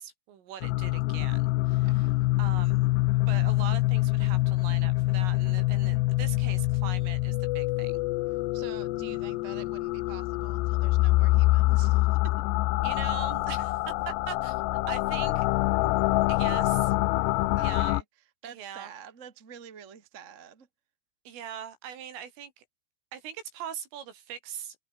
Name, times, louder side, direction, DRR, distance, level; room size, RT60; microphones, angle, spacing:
voice 1, 0.0-2.1 2.4-2.9 3.1-8.0 12.8-14.6 14.9-15.5 16.3-16.9 17.6-18.0 18.4-18.9 21.3-22.6 23.1-24.8, right 9 dB, 85° right, 6.0 m, -41 dB
sound 1, 0.6-18.0, left 20 dB, 90° left, 2.5 m, -25 dB
voice 2, 1.8-2.2 8.5-12.4 17.5-18.0 18.4-20.7, right 7 dB, 50° right, 0.8 m, -47 dB
omnidirectional pair, 5.6 m